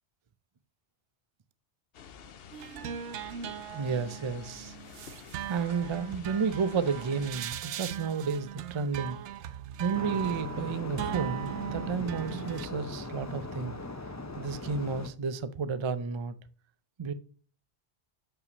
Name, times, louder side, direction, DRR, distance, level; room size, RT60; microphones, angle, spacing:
sound 1, 1.9-7.3, left 7 dB, 65° left, 0.9 m, -49 dB
sound 2, 2.5-12.7, right 10 dB, 85° right, 0.9 m, -39 dB
voice 1, 3.7-4.7 5.5-9.2 9.8-13.8 14.4-16.3 17.0-17.1, right 5 dB, 40° right, 0.4 m, -32 dB
sound 3, 9.9-15.1, left 2 dB, 20° left, 0.6 m, -39 dB
6.9 x 5.7 x 3.9 m
omnidirectional pair, 1.1 m